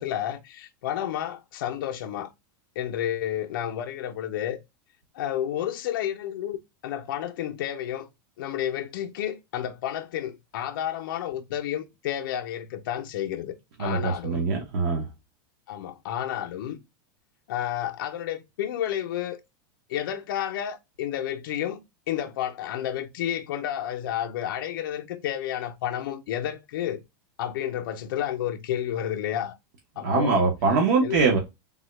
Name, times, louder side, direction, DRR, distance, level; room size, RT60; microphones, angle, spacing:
voice 1, 0.0-2.3 2.8-4.6 5.2-8.1 8.4-14.5 15.7-16.8 17.5-19.4 19.9-21.8 22.1-27.0 27.4-29.6 30.0-30.4 31.0-31.2, left 11 dB, 65° left, 0.5 m, -31 dB
voice 2, 13.8-15.0 30.0-31.4, right 4 dB, 55° right, 0.8 m, -23 dB
3.5 x 2.1 x 3.0 m
supercardioid pair, 180°, 12 cm